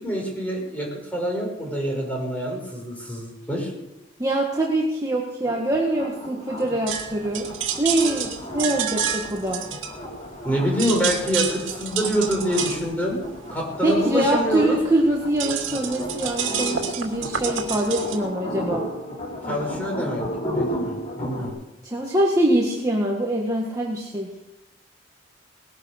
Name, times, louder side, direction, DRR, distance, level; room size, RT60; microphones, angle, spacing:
voice 1, 0.0-3.7 10.4-13.2 13.5-14.8 19.5-20.2 20.5-21.5, equal, 10° left, -1 dB, 5.5 m, -26 dB
voice 2, 4.2-7.5 7.8-9.7 13.8-18.9 21.8-24.3, right 1 dB, 15° right, -2 dB, 1.7 m, -24 dB
sound 1, 5.4-21.5, equal, 30° left, 4.0 m, -34 dB
sound 2, 6.9-10.4 10.7-18.2, right 7 dB, 75° right, 2.5 m, -29 dB
19.5 x 11.0 x 6.6 m, 0.96 s
head